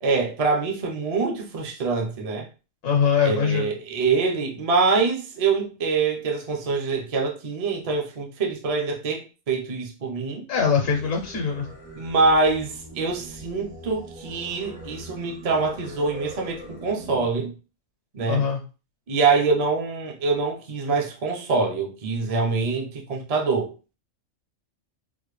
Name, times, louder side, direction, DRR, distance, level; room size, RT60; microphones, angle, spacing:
voice 1, 0.0-2.5 3.2-10.5 11.9-17.5 18.1-18.4 19.1-23.7, right 4 dB, 40° right, 0.5 m, -25 dB
voice 2, 2.8-3.7 10.5-11.7 18.3-18.6, left 6 dB, 75° left, 1.0 m, -22 dB
Singing, 10.6-17.3, right 1 dB, 85° right, 1.8 m, -42 dB
3.7 x 2.2 x 3.1 m
omnidirectional pair, 1.3 m